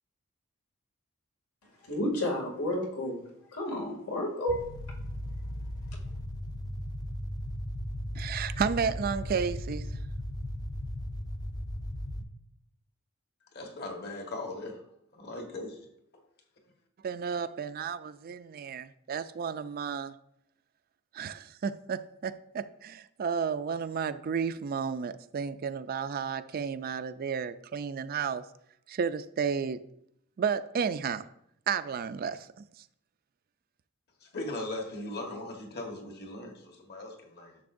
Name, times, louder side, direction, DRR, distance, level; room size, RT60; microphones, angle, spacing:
voice 1, 1.9-3.2 3.5-4.6, left 1 dB, 85° left, 2.4 m, -31 dB
sound 1, 4.5-12.2, left 1 dB, 20° left, 0.5 m, -36 dB
voice 2, 8.2-9.8 17.0-20.1 21.1-28.4 28.9-29.8 30.4-31.2 31.7-32.5, right 6 dB, 45° right, 0.4 m, -32 dB
voice 3, 13.5-14.8 15.1-15.9 34.2-37.6, left 2 dB, 50° left, 1.4 m, -39 dB
10.5 x 6.6 x 2.6 m
head